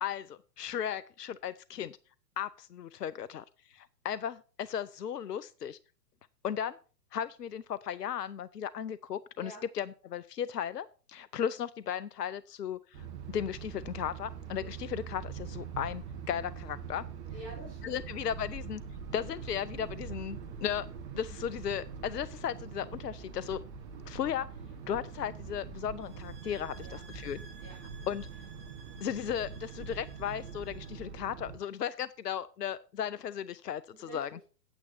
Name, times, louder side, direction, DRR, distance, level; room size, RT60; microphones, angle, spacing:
voice 1, 0.0-2.0 2.4-5.8 6.4-6.8 7.1-17.1 17.8-18.8 19.1-20.9 21.1-23.6 24.1-24.5 24.9-27.4 28.1-28.3 29.0-34.3, left 9 dB, 75° left, 17 dB, 0.6 m, -36 dB
sound 1, 12.9-31.6, right 6 dB, 40° right, 1.6 m, -43 dB
voice 2, 17.3-18.0 26.8-27.0 27.6-27.8 33.9-34.4, right 1 dB, 10° left, -7 dB, 4.5 m, -48 dB
sound 2, 26.0-31.1, right 3 dB, 65° right, 2.0 m, -56 dB
9.0 x 8.5 x 4.4 m, 0.37 s
figure-of-eight pair, 115°, 49 cm